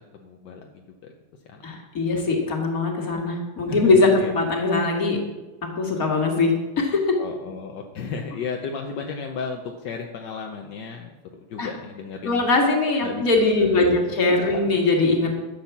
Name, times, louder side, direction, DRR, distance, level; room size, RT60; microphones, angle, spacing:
voice 1, 0.1-1.1 1.5-1.6 3.7-4.3 7.2-11.1 11.5-12.4 13.0-13.2 13.6-14.8, left 5 dB, 80° left, 3 dB, 1.5 m, -34 dB
voice 2, 1.6-5.2 5.8-7.2 11.6-11.7 12.2-15.3, left 3 dB, 55° left, 1 dB, 2.4 m, -21 dB
12.0 x 7.2 x 7.2 m, 1.2 s
omnidirectional pair, 1.9 m